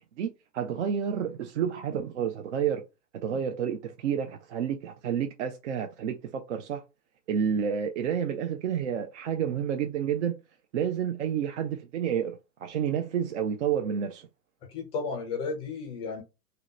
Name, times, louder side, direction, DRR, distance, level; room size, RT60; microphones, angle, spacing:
voice 1, 0.2-2.8 3.2-6.8 7.3-10.3 10.7-14.3, right 8 dB, 45° right, 0.5 m, -30 dB
voice 2, 14.7-16.2, left 4 dB, 10° left, 0.5 m, -33 dB
2.8 x 2.1 x 3.7 m
figure-of-eight pair, 110°, 50 cm